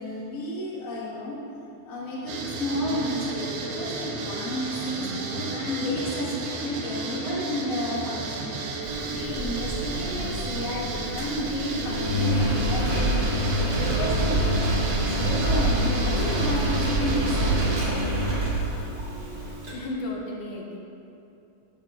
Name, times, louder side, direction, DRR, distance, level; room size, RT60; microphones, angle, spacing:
voice 1, 0.0-1.4 1.9-13.1 13.5-14.6 15.0-18.0, left 1 dB, 45° left, -5 dB, 1.0 m, -32 dB
sound 1, 2.3-17.8, right 3 dB, 75° right, 2.2 m, -33 dB
Engine, 8.8-19.7, right 1 dB, 30° right, 1.2 m, -26 dB
voice 2, 19.4-20.8, left 2 dB, 80° left, -1 dB, 2.4 m, -34 dB
10.5 x 6.2 x 3.6 m, 2.7 s
omnidirectional pair, 3.6 m